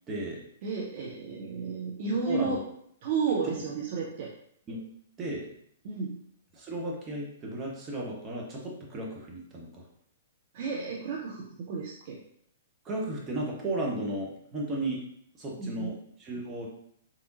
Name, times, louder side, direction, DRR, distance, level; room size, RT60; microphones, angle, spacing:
voice 1, 0.1-0.4 2.2-2.6 3.4-3.6 4.7-4.8 5.2-5.5 6.5-9.8 12.8-15.0 15.4-16.7, right 1 dB, 20° right, -2 dB, 0.9 m, -34 dB
voice 2, 0.6-2.6 3.0-4.3 5.8-6.2 10.5-12.2 15.6-15.9, right 5 dB, 45° right, -3 dB, 0.5 m, -32 dB
3.5 x 2.9 x 2.5 m, 0.69 s
figure-of-eight pair, 115°, 0 cm